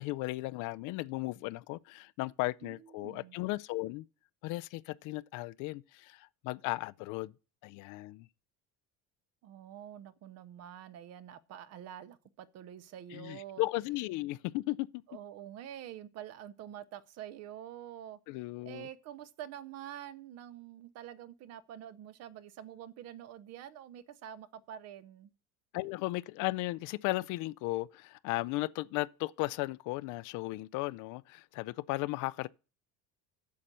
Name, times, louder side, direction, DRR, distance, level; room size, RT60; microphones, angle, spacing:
voice 1, 0.0-4.0 4.4-7.3 7.6-8.3 13.1-14.9 18.3-18.9 25.7-32.5, left 20 dB, 65° left, 0.5 m, -36 dB
voice 2, 2.6-3.4 9.4-13.6 15.1-25.3, right 10 dB, 50° right, 0.7 m, -47 dB
8.5 x 7.5 x 6.7 m
cardioid pair, 165°, 33 cm